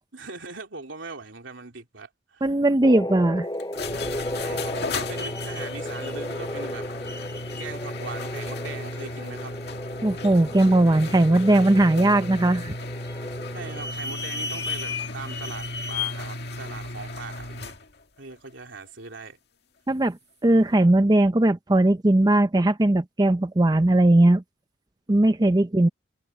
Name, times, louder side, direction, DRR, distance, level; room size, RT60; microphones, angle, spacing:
voice 1, 0.1-2.4 4.4-7.2 7.6-9.6 13.5-17.7 18.2-19.4, right 4 dB, 80° right, 3.1 m, -40 dB
voice 2, 2.4-3.5 10.0-12.7 19.9-24.4 25.1-25.9, right 1 dB, 20° right, 0.5 m, -19 dB
sound 1, 2.8-13.9, left 1 dB, 20° left, 6.0 m, -35 dB
sound 2, 3.6-17.8, left 3 dB, 55° left, 2.1 m, -34 dB
head